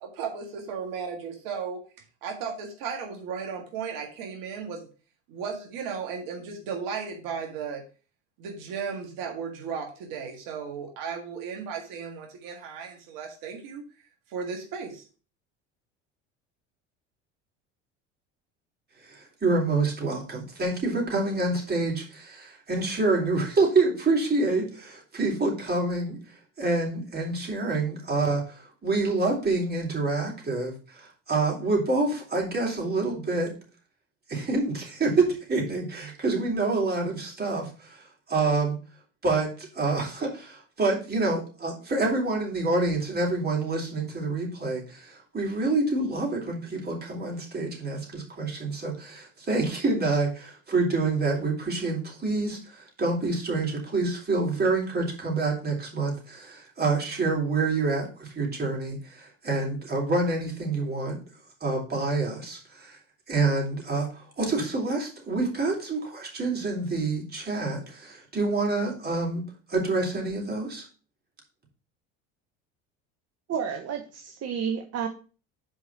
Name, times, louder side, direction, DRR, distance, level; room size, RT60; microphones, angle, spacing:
voice 1, 0.0-1.8 2.2-4.9 5.3-7.8 8.4-13.8 14.3-15.0, right 6 dB, 65° right, 2 dB, 1.8 m, -35 dB
voice 2, 19.0-26.2 26.6-33.5 34.3-38.8 39.2-61.2 61.6-63.0 63.3-69.4 69.7-70.9, right 3 dB, 25° right, -1 dB, 3.5 m, -27 dB
voice 3, 73.5-75.1, right 7 dB, 45° right, 5 dB, 1.1 m, -31 dB
5.4 x 5.0 x 6.0 m, 0.37 s
hypercardioid pair, 80°, 36 cm